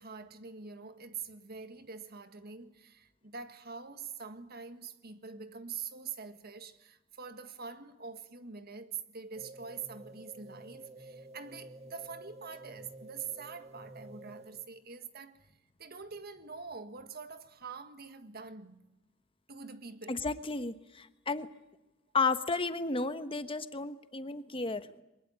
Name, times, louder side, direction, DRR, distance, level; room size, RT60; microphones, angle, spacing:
voice 1, 0.0-15.5 15.8-18.9 19.5-20.2, right 5 dB, 50° right, 1.8 m, -45 dB
sound 1, 9.3-14.8, right 2 dB, 35° right, 1.6 m, -50 dB
voice 2, 20.1-21.5 22.1-25.0, left 4 dB, 25° left, 1.2 m, -33 dB
23.5 x 20.5 x 8.9 m
head